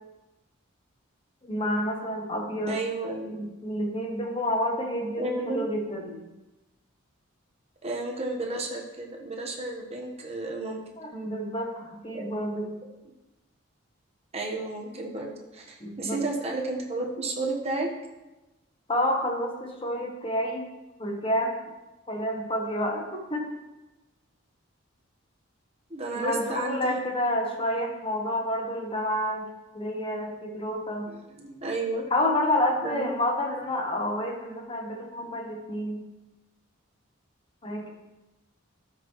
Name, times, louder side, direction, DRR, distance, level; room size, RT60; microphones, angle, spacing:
voice 1, 1.4-2.8 3.2-6.2 11.0-12.7 15.8-16.2 18.9-20.7 21.0-21.5 22.1-23.5 26.1-29.5 29.7-31.1 32.1-36.0 37.6-37.9, left 1 dB, 25° left, 2 dB, 1.1 m, -29 dB
voice 2, 2.7-3.4 5.1-5.6 7.8-10.8 12.1-12.3 14.3-17.9 25.9-27.0 31.1-32.0 32.8-33.1, right 2 dB, 30° right, 0 dB, 1.2 m, -32 dB
12.5 x 5.8 x 3.1 m, 1.1 s
head